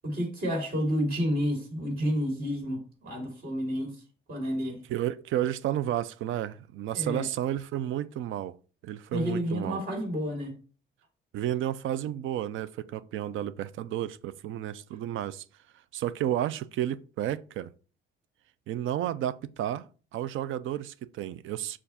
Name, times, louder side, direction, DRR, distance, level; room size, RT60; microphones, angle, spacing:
voice 1, 0.0-4.0 4.3-4.8 6.9-7.2 9.1-10.5, equal, 50° right, 2.6 m, -30 dB
voice 2, 4.9-8.6 8.8-9.8 11.3-15.5 15.9-17.7 18.7-21.8, right 12 dB, 80° right, 0.5 m, -32 dB
6.8 x 2.5 x 5.6 m
cardioid pair, 145°, 20 cm